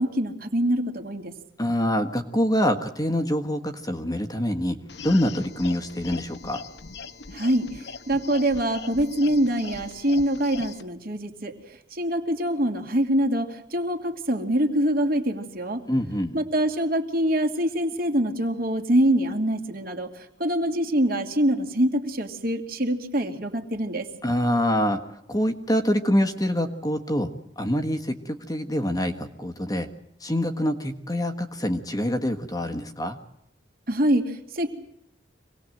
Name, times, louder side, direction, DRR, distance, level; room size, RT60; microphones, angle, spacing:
voice 1, 0.0-1.3 7.3-15.8 16.3-24.1 33.9-34.7, right 1 dB, 50° right, 4 dB, 2.6 m, -25 dB
voice 2, 1.6-4.8 5.0-6.6 15.9-16.3 24.2-25.0 25.3-27.3 27.6-29.9 30.2-33.2, equal, 20° left, 5 dB, 1.5 m, -25 dB
sound 1, 4.9-10.8, left 4 dB, 60° left, 1.2 m, -40 dB
26.0 x 19.0 x 7.8 m, 0.80 s
head